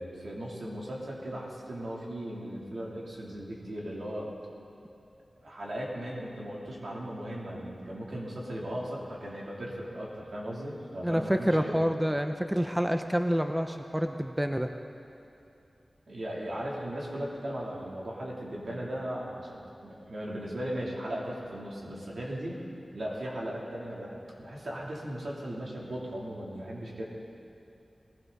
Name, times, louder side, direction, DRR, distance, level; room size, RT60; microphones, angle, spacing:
voice 1, 0.0-4.3 5.4-11.8 16.1-22.6 22.9-27.0, equal, 70° right, -4 dB, 3.2 m, -37 dB
voice 2, 11.0-14.7, equal, 5° right, 6 dB, 0.6 m, -28 dB
20.0 x 16.0 x 4.1 m, 2.7 s
wide cardioid pair, 100°, 0 cm